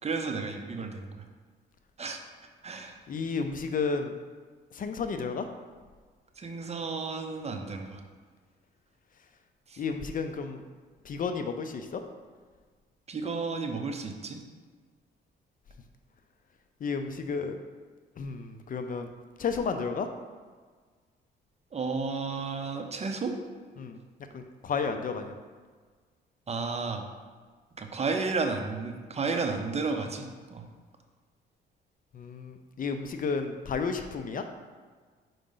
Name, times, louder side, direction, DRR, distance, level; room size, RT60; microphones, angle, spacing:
voice 1, 0.0-1.1 2.0-2.2 2.6-3.0 6.4-8.0 9.7-9.8 13.1-14.4 21.7-23.3 26.5-27.1 27.8-30.6, right 4 dB, 35° right, 5 dB, 0.7 m, -32 dB
voice 2, 3.1-4.1 4.7-5.5 9.8-10.6 11.0-12.0 16.8-17.6 18.2-19.1 19.4-20.1 23.8-24.0 24.3-25.4 32.1-34.4, left 5 dB, 45° left, 7 dB, 0.5 m, -32 dB
5.2 x 4.8 x 3.8 m, 1.5 s
cardioid pair, 90°, 20 cm